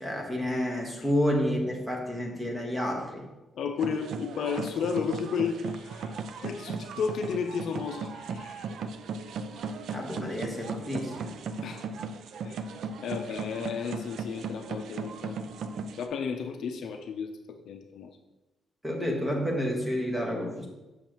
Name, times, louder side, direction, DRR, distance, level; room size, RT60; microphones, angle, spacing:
voice 1, 0.0-3.2 9.9-11.3 18.8-20.7, equal, 10° right, 0 dB, 1.2 m, -30 dB
voice 2, 3.5-8.7 11.6-11.8 12.4-12.6 13.0-15.4 16.0-18.2, left 6 dB, 60° left, 6 dB, 0.5 m, -33 dB
sound 1, 3.8-16.1, right 4 dB, 60° right, 0.4 m, -37 dB
7.0 x 6.4 x 3.0 m, 1.0 s
cardioid pair, 175°, 0 cm